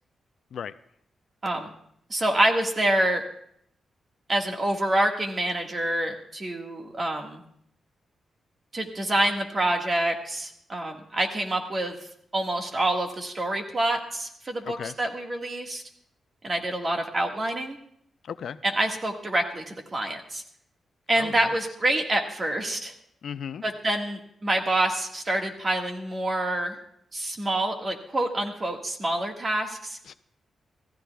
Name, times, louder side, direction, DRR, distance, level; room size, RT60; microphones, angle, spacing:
voice 1, 2.1-3.2 4.3-7.4 8.7-11.9 12.3-15.8 16.4-17.8 18.6-20.4 21.1-22.9 23.6-26.8 27.1-30.0, right 1 dB, 30° right, 3 dB, 1.6 m, -27 dB
voice 2, 18.2-18.6 21.2-21.6 23.2-23.7 30.1-30.2, left 7 dB, 65° left, 13 dB, 0.4 m, -36 dB
27.0 x 15.0 x 2.3 m, 0.69 s
wide cardioid pair, 140°, 0 cm